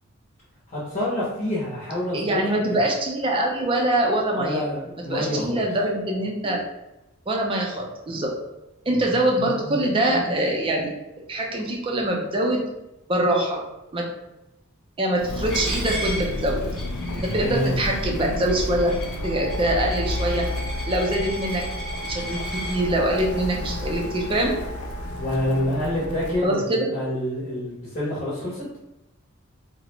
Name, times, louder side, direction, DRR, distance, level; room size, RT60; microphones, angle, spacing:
voice 1, 0.7-2.4 2.7-2.8 4.3-5.6 17.1-17.8 25.2-28.8, left 1 dB, 35° left, -7 dB, 0.6 m, -27 dB
voice 2, 2.1-4.7 5.1-6.6 7.3-8.3 8.9-10.9 11.3-12.6 13.1-13.6 13.9-14.1 15.0-16.6 17.2-18.9 19.2-20.5 20.9-21.7 22.0-22.4 22.7-24.5 26.4-26.9, right 1 dB, 25° right, 0 dB, 0.4 m, -24 dB
Walk footsteps, 15.1-26.4, left 1 dB, 90° left, 0.3 m, -31 dB
Coin (dropping), 15.5-22.8, right 1 dB, ahead, 0.8 m, -36 dB
Wind instrument woodwind instrument, 19.2-26.6, right 4 dB, 90° right, 0.6 m, -40 dB
2.4 x 2.0 x 2.9 m, 0.94 s
head